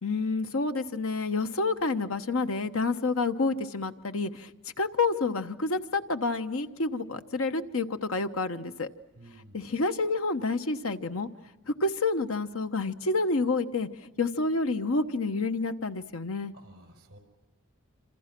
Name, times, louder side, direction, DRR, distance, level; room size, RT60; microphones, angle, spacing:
voice 1, 0.0-4.5 4.8-8.9 9.5-11.3 11.7-16.5, left 3 dB, 75° left, 9 dB, 1.1 m, -29 dB
voice 2, 9.1-9.6 16.5-17.2, right 1 dB, 50° right, 6 dB, 4.9 m, -52 dB
27.5 x 26.5 x 6.0 m, 1.1 s
head